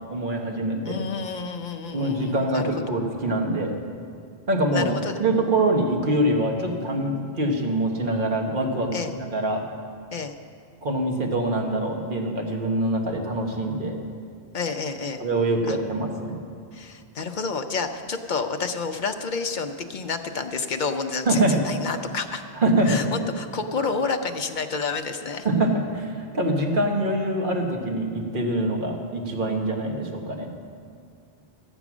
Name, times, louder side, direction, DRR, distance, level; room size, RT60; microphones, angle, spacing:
voice 1, 0.1-1.0 1.9-3.7 4.5-4.9 5.2-8.9 9.2-9.6 10.8-14.0 15.2-16.4 21.3-21.6 22.5-23.0 25.4-30.5, right 1 dB, 50° right, 1 dB, 1.4 m, -24 dB
voice 2, 0.8-2.7 4.7-5.2 8.9-9.1 10.1-10.3 14.5-15.2 15.7-15.8 16.7-22.4 22.9-25.5, left 4 dB, 50° left, 7 dB, 0.7 m, -29 dB
13.0 x 9.1 x 6.1 m, 2.2 s
omnidirectional pair, 1.1 m